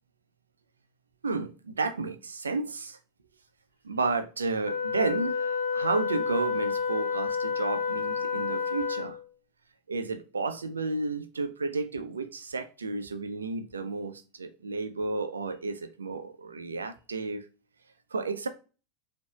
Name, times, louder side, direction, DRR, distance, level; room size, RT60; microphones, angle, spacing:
voice 1, 1.2-3.0 3.8-9.2 9.9-17.4 18.1-18.5, right 3 dB, 80° right, 9 dB, 0.5 m, -32 dB
Wind instrument woodwind instrument, 4.6-9.3, left 5 dB, 80° left, 1.1 m, -30 dB
6.1 x 2.7 x 2.3 m, 0.33 s
figure-of-eight pair, 85°, 0 cm